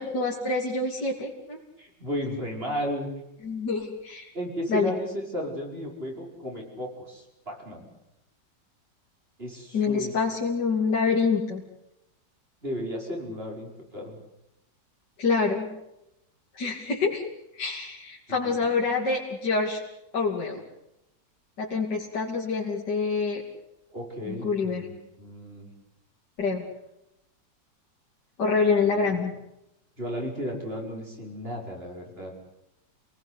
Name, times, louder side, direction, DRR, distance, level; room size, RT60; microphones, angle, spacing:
voice 1, 0.0-1.6 3.4-4.3 4.7-4.9 9.7-11.6 15.2-15.7 16.5-17.2 17.6-19.8 20.1-20.6 21.6-23.4 24.3-24.8 26.4-26.6 28.4-29.3, left 4 dB, 65° left, -3 dB, 3.6 m, -26 dB
voice 2, 1.8-3.1 4.3-7.9 9.4-10.1 12.6-14.2 18.3-18.6 23.9-25.7 28.8-29.2 30.0-32.3, equal, 30° right, 0 dB, 6.0 m, -34 dB
28.5 x 19.0 x 8.2 m, 0.86 s
omnidirectional pair, 2.0 m